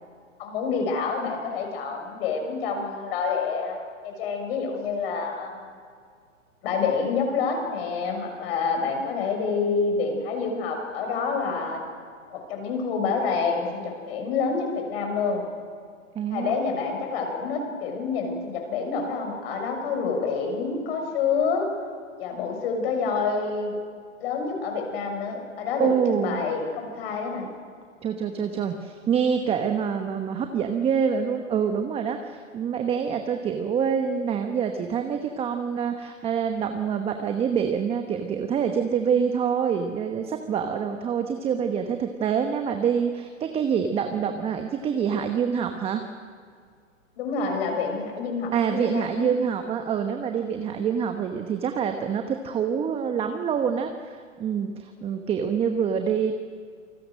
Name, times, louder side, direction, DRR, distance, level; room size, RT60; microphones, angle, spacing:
voice 1, 0.4-3.8 4.0-5.7 6.6-11.8 12.3-15.5 16.3-21.7 22.2-23.8 24.2-27.5 47.2-49.3, left 5 dB, 45° left, 3 dB, 6.6 m, -27 dB
voice 2, 16.1-16.6 25.8-26.4 28.0-46.0 48.5-56.4, right 7 dB, 15° right, 6 dB, 1.1 m, -26 dB
28.5 x 20.0 x 6.5 m, 2.1 s
hypercardioid pair, 130°, 40 cm